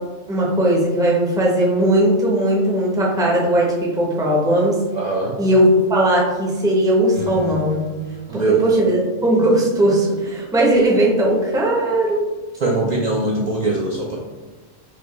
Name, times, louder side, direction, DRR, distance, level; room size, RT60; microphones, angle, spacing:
voice 1, 0.3-4.8 5.4-7.8 8.3-12.3, right 1 dB, 5° right, -3 dB, 0.4 m, -18 dB
voice 2, 4.9-5.4 8.3-8.6 12.6-14.2, right 2 dB, 80° right, -3 dB, 0.3 m, -21 dB
sound 1, 7.1-9.8, right 1 dB, 85° left, 1.9 m, -35 dB
4.7 x 2.2 x 3.0 m, 1.2 s
omnidirectional pair, 1.3 m